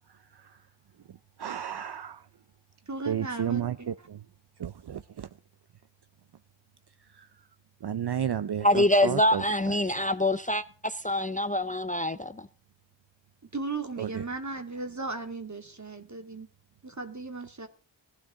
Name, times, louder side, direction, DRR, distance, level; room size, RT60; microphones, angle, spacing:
voice 1, 0.1-0.7 1.4-2.3 3.1-4.2 4.6-5.3 7.0-7.5 7.8-10.0 14.0-14.2, right 9 dB, 60° right, 0.6 m, -33 dB
voice 2, 2.9-3.9 13.5-16.5 16.8-17.7, right 3 dB, 40° right, 2.6 m, -36 dB
voice 3, 8.6-12.5, left 1 dB, 15° left, 0.6 m, -25 dB
19.5 x 12.5 x 3.8 m
wide cardioid pair, 55°, 46 cm